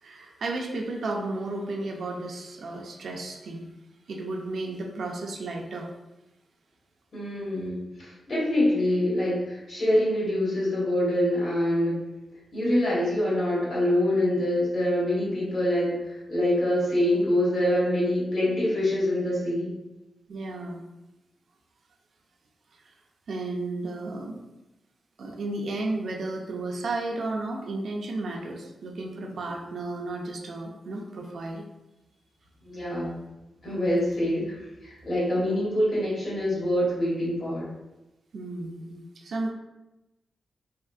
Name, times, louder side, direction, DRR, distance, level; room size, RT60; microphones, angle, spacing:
voice 1, 0.0-3.7 4.1-5.9 20.3-20.8 23.3-24.4 25.2-31.7 38.3-39.5, right 2 dB, 65° right, 1 dB, 0.4 m, -33 dB
voice 2, 7.1-12.0 12.5-19.7 32.6-33.1 33.6-37.7, left 1 dB, 50° left, -7 dB, 1.4 m, -25 dB
3.5 x 2.4 x 2.4 m, 0.99 s
wide cardioid pair, 150°, 0 cm